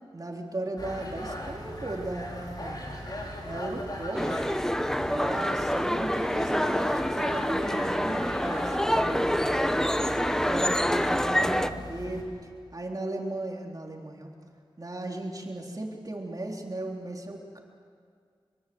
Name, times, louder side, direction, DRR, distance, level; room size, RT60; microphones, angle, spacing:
voice 1, 0.1-2.9 3.4-4.4 4.8-9.8 10.2-14.3 14.8-17.6, right 2 dB, 40° right, 0 dB, 3.6 m, -36 dB
sound 1, 0.8-12.2, left 1 dB, 45° left, 4.5 m, -39 dB
sound 2, 4.2-11.7, equal, 5° left, 0.9 m, -26 dB
24.0 x 22.5 x 7.8 m, 2.1 s
wide cardioid pair, 65°, 10 cm